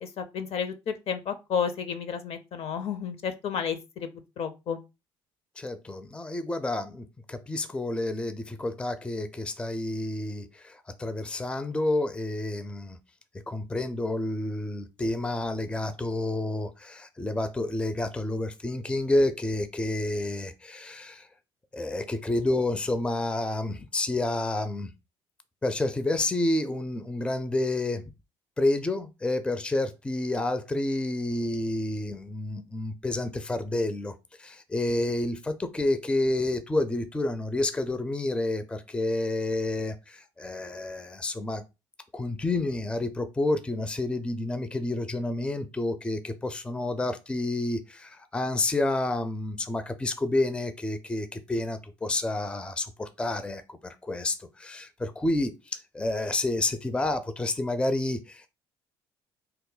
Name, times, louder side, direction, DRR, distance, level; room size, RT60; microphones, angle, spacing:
voice 1, 0.0-4.1 4.4-4.8, left 7 dB, 55° left, 0.6 m, -31 dB
voice 2, 5.6-13.0 13.5-21.3 21.7-24.9 25.6-28.0 28.6-41.6 42.1-58.5, left 2 dB, 10° left, 0.4 m, -29 dB
2.8 x 2.1 x 3.8 m
supercardioid pair, 65°, 12 cm